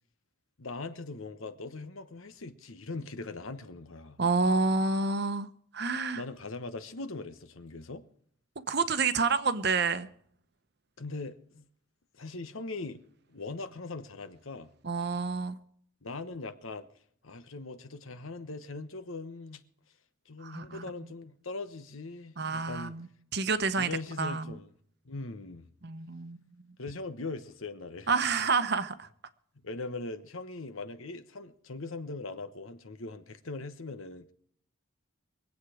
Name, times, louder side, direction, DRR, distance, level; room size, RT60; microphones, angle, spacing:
voice 1, 0.6-4.2 6.2-8.0 11.0-11.6 12.2-13.0 13.3-14.7 16.0-16.9 17.2-19.6 20.3-23.0 23.8-24.7 25.0-25.7 26.8-28.1 29.6-34.3, left 3 dB, 75° left, 1.1 m, -40 dB
voice 2, 4.2-5.5 5.7-6.2 8.7-10.1 14.8-15.6 20.4-20.8 22.4-23.1 23.3-23.9 24.2-24.6 25.8-26.4 28.1-29.1, right 4 dB, 50° right, 0.9 m, -28 dB
24.0 x 8.3 x 5.0 m
head